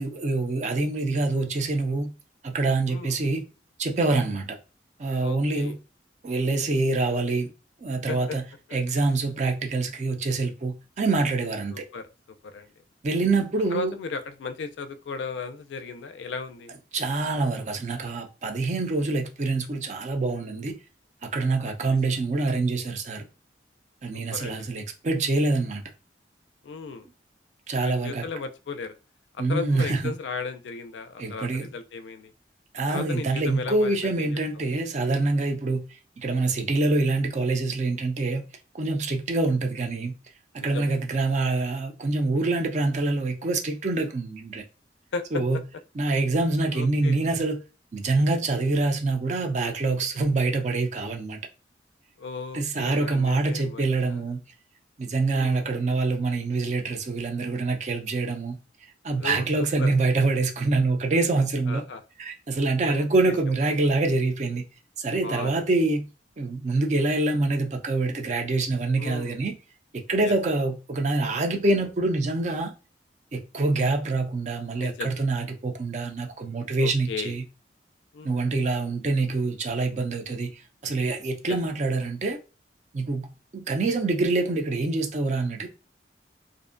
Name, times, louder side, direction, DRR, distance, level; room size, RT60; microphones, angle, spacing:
voice 1, 0.0-2.1 2.4-3.4 3.8-4.6 5.0-5.8 6.2-7.5 7.8-8.4 8.7-11.8 13.0-14.0 16.9-20.7 21.3-23.2 24.0-25.8 27.7-28.2 29.4-30.1 31.2-31.7 32.7-35.8 36.2-38.4 38.7-40.1 40.6-44.6 45.3-45.6 46.0-47.6 47.9-51.4 52.5-54.4 55.0-58.6 59.0-61.8 62.2-64.6 65.0-66.1 66.4-69.5 69.9-72.7 73.3-77.4 78.2-82.4 82.9-83.3 83.5-85.7, right 3 dB, 40° right, 0.4 m, -25 dB
voice 2, 5.2-5.8 8.1-8.4 11.7-12.1 12.4-12.7 13.7-16.7 21.7-22.0 24.3-24.7 26.6-27.1 27.8-29.0 29.3-32.3 32.9-34.4 40.6-40.9 45.1-45.4 46.7-47.2 52.2-53.8 54.1-54.2 55.3-55.6 59.2-59.5 59.8-59.9 61.7-62.0 62.8-63.3 65.2-65.6 69.0-69.4 70.2-70.3 74.7-75.2 76.8-77.4 78.1-78.4 81.5-81.6, left 4 dB, 80° left, 0.3 m, -36 dB
2.5 x 2.1 x 2.4 m
head